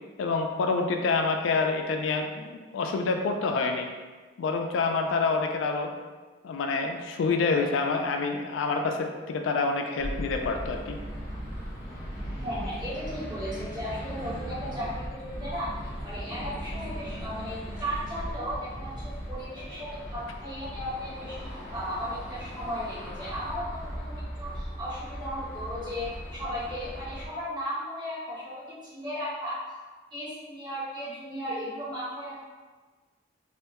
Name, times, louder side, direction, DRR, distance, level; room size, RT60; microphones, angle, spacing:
voice 1, 0.2-3.9 4.4-5.9 6.4-11.0, left 4 dB, 85° left, 4 dB, 0.3 m, -27 dB
sound 1, 10.0-27.3, equal, 25° left, 0.7 m, -38 dB
voice 2, 12.4-21.4 21.7-29.6 30.1-32.4, equal, 25° right, -11 dB, 1.3 m, -36 dB
3.3 x 2.2 x 2.8 m, 1.3 s
head